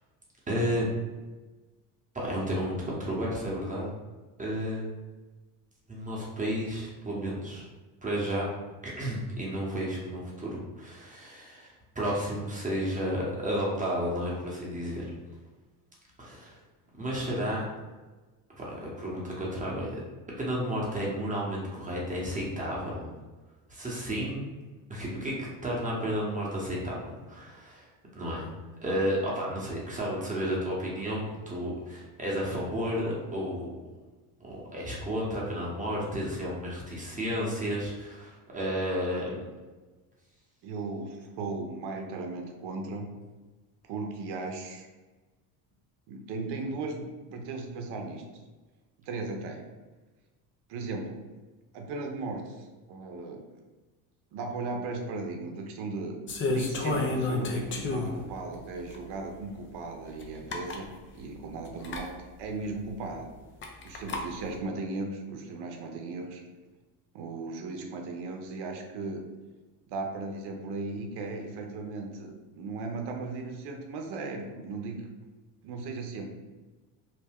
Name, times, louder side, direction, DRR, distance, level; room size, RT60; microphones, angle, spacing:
voice 1, 0.5-0.9 2.1-3.9 4.4-4.9 5.9-7.7 8.0-8.5 8.8-15.1 16.2-16.6 16.9-17.6 18.5-20.0 20.4-23.1 23.7-24.5 24.9-27.9 28.1-28.4 28.8-33.7 34.4-39.3, equal, 15° right, -4 dB, 0.9 m, -32 dB
voice 2, 40.6-43.1 43.9-44.9 46.1-48.2 49.1-49.6 50.7-51.2 51.7-53.4 54.3-60.9 61.1-62.1 62.4-63.3 63.8-66.4 67.1-69.2 69.9-75.0 75.6-76.3, right 3 dB, 60° right, 3 dB, 0.7 m, -37 dB
sound 1, 56.3-58.3 58.9-59.0 60.2-60.3 60.5-60.8 61.8-62.0 63.6-64.2, left 3 dB, 30° left, 0.4 m, -30 dB
2.8 x 2.1 x 3.5 m, 1.2 s
supercardioid pair, 95°, 45 cm